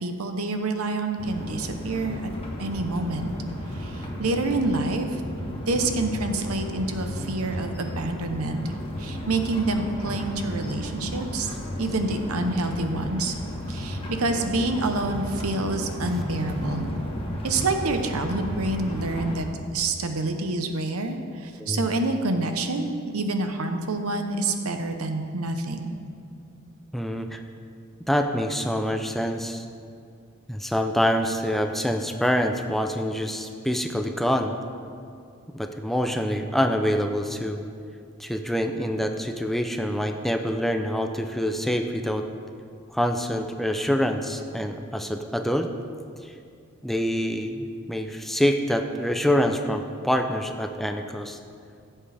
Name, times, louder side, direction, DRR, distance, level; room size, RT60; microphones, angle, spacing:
voice 1, 0.0-2.3 2.6-3.3 3.7-5.2 5.7-11.5 11.8-13.3 13.7-16.9 17.4-19.5 19.7-25.9, right 2 dB, 80° right, 6 dB, 0.9 m, -27 dB
sound 1, 1.2-19.4, equal, 25° left, 1.4 m, -34 dB
voice 2, 26.9-27.4 28.1-29.6 30.5-34.6 35.5-37.6 38.2-42.2 42.9-45.7 46.2-46.3 46.8-51.4, equal, ahead, 5 dB, 0.4 m, -26 dB
15.5 x 7.6 x 3.4 m, 2.4 s
head